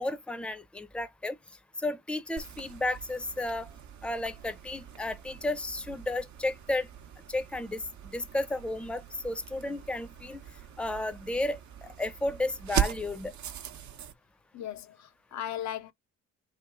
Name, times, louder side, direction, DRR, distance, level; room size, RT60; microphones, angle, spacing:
voice 1, 0.0-1.4 1.8-3.7 4.0-6.9 7.3-10.4 10.8-13.3, left 2 dB, 5° left, 0.6 m, -33 dB
sound 1, 2.4-14.1, right 10 dB, 70° right, 0.8 m, -39 dB
voice 2, 14.5-15.9, left 11 dB, 65° left, 0.6 m, -37 dB
3.3 x 3.1 x 4.7 m
cardioid pair, 90°, 30 cm